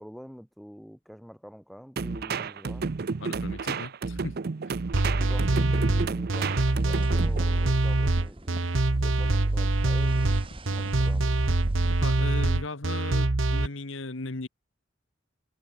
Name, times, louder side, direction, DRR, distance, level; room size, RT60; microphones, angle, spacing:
voice 1, 0.0-2.9 5.2-11.4, equal, ahead, 3.3 m, -46 dB
sound 1, 2.0-7.4, right 4 dB, 50° right, 0.5 m, -32 dB
voice 2, 3.2-4.4 4.7-4.8 12.0-14.5, left 2 dB, 70° left, 1.5 m, -37 dB
sound 2, 4.9-13.7, right 2 dB, 75° right, 1.2 m, -24 dB
sound 3, 6.3-12.6, right 1 dB, 25° right, 1.8 m, -44 dB
head